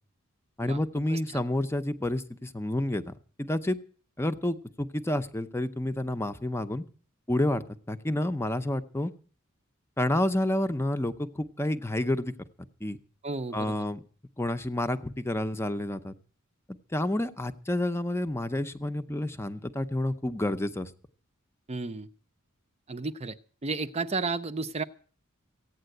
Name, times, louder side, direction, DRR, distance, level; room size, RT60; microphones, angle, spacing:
voice 1, 0.6-3.8 4.2-6.8 7.3-9.1 10.0-12.3 12.8-13.0 13.5-14.0 14.4-16.1 16.9-20.9, left 1 dB, 10° left, 10 dB, 0.7 m, -29 dB
voice 2, 13.2-13.8 21.7-22.1 22.9-23.4 23.6-24.8, right 3 dB, 30° right, 11 dB, 0.6 m, -32 dB
15.5 x 9.3 x 7.8 m, 0.43 s
head